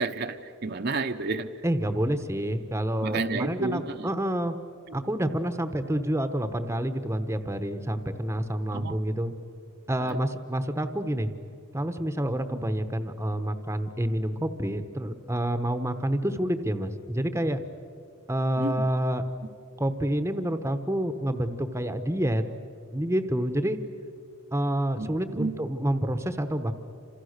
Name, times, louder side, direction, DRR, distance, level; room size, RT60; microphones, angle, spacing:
voice 1, 0.0-1.5 3.0-4.1 4.9-5.0 8.7-9.0 10.0-10.2 12.5-12.6 18.6-18.9 25.0-25.1 25.4-25.5, right 3 dB, 50° right, 6 dB, 0.9 m, -30 dB
voice 2, 1.6-4.6 4.9-9.3 9.9-11.3 11.7-17.6 18.3-19.2 19.8-22.4 22.9-23.8 24.5-26.7, right 1 dB, 15° right, 9 dB, 1.0 m, -28 dB
29.5 x 27.0 x 6.6 m, 2.5 s
head